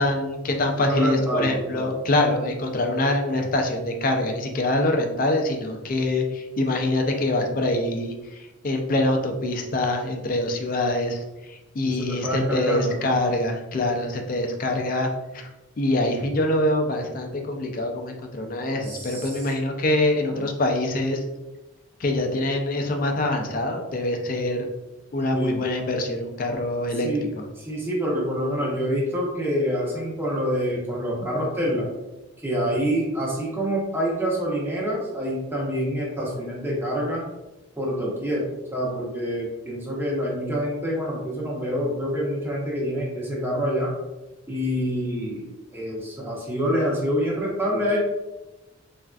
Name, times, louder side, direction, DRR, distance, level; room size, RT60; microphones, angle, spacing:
voice 1, 0.0-11.2 11.5-15.5 15.8-21.2 22.0-24.7 25.1-27.1 27.4-27.5, left 1 dB, 45° left, 4 dB, 0.4 m, -24 dB
voice 2, 0.8-1.9 11.8-12.9 18.8-19.3 20.4-20.5 25.3-25.6 27.0-27.3 27.6-31.9 32.4-37.2 37.8-38.4 38.7-43.9 44.5-45.5 45.7-48.0, equal, 10° right, -4 dB, 0.7 m, -26 dB
3.3 x 2.5 x 2.3 m, 1.0 s
head